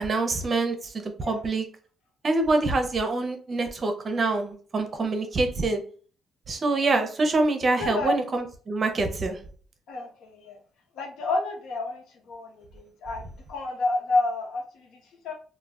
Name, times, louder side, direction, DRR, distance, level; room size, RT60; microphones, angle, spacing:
voice 1, 0.0-1.6 2.2-5.8 6.5-9.4, right 3 dB, 40° right, 6 dB, 0.6 m, -25 dB
voice 2, 1.2-1.5 4.9-5.1 6.7-6.9 7.8-8.2 9.9-10.6 10.9-15.3, left 2 dB, 85° left, 2 dB, 0.7 m, -30 dB
2.2 x 2.2 x 3.5 m, 0.42 s
cardioid pair, 90°, 0 cm